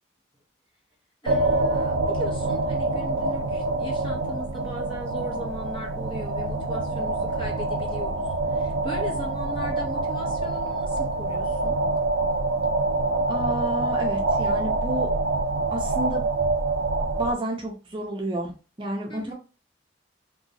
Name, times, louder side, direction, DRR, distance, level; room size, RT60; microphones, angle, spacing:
voice 1, 1.2-11.8 19.1-19.3, equal, 25° left, -1 dB, 0.9 m, -38 dB
sound 1, 1.3-17.3, right 2 dB, 75° right, 0.4 m, -26 dB
voice 2, 13.3-15.1 15.7-16.2 17.2-18.5 18.8-19.3, right 1 dB, 25° right, 0 dB, 0.6 m, -30 dB
3.0 x 2.8 x 2.7 m, 0.33 s
head